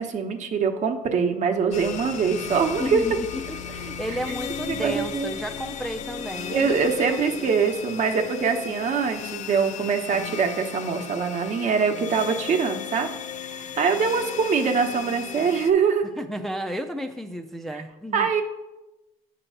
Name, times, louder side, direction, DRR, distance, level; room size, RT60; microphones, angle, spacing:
voice 1, 0.0-3.0 4.7-5.3 6.5-13.1 13.5-16.0 18.1-18.4, right 5 dB, 50° right, 5 dB, 1.0 m, -23 dB
sound 1, 1.7-15.7, left 7 dB, 45° left, 0.6 m, -35 dB
voice 2, 2.8-7.2 16.2-18.3, equal, ahead, 3 dB, 0.4 m, -33 dB
8.8 x 3.0 x 6.4 m, 1.0 s
cardioid pair, 105°, 16 cm